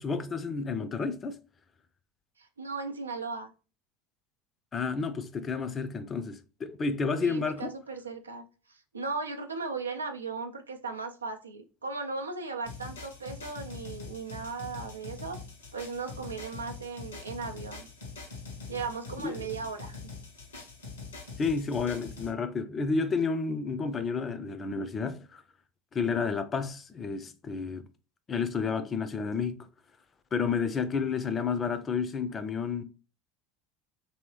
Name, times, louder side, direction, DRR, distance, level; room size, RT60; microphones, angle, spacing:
voice 1, 0.0-1.4 4.7-7.7 19.2-19.4 21.4-25.4 25.9-27.9 28.3-29.6 30.3-32.8, left 5 dB, 30° left, 0.4 m, -31 dB
voice 2, 2.4-3.5 7.2-15.4 15.7-17.9 18.7-20.0, right 4 dB, 90° right, 0.4 m, -37 dB
sound 1, 12.6-22.3, left 4 dB, 85° left, 0.9 m, -43 dB
3.0 x 2.7 x 3.1 m
hypercardioid pair, 75°, 0 cm